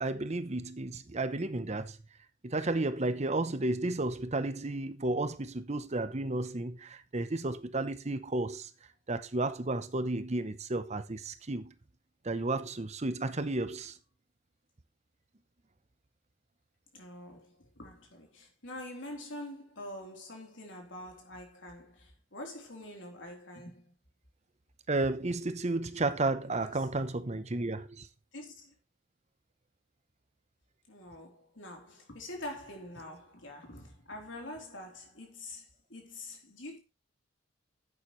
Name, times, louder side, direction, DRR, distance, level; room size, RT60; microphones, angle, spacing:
voice 1, 0.0-2.0 2.4-8.7 9.1-11.7 12.2-14.0 24.9-28.1, right 2 dB, 35° right, 0.8 m, -32 dB
voice 2, 16.9-23.9 26.4-26.9 28.3-28.7 30.9-36.8, left 1 dB, 75° left, 3.6 m, -45 dB
11.5 x 8.8 x 3.2 m
head